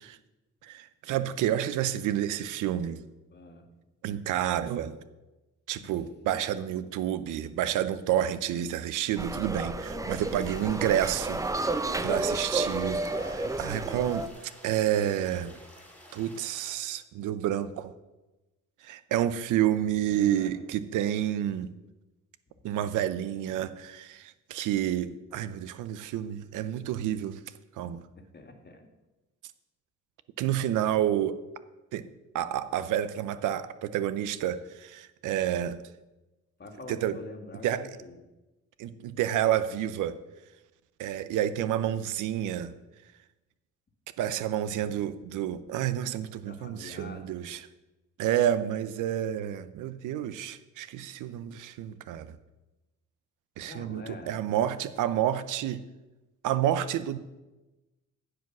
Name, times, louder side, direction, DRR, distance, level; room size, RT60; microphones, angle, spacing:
voice 1, 0.6-3.0 4.0-5.0 5.7-11.4 11.8-13.0 13.6-14.3 14.6-15.5 16.1-17.9 18.8-21.7 22.6-27.4 27.8-28.0 30.4-31.4 31.9-32.0 32.3-35.8 36.9-37.2 37.6-37.9 38.8-40.2 41.0-42.7 44.2-47.6 48.2-52.4 53.6-55.8 56.4-57.2, right 11 dB, 85° right, 0.7 m, -29 dB
voice 2, 3.3-3.7 5.8-5.9 6.3-6.8 9.7-10.7 11.8-12.5 13.0-13.7 20.1-20.5 28.1-28.9 36.6-38.2 46.4-47.4 53.7-54.3, left 3 dB, 35° left, 2.0 m, -46 dB
sound 1, 9.2-14.3, right 2 dB, 10° right, 0.6 m, -31 dB
sound 2, 10.0-16.8, left 1 dB, 5° left, 3.0 m, -52 dB
15.0 x 5.1 x 6.1 m
cardioid pair, 90°, 30 cm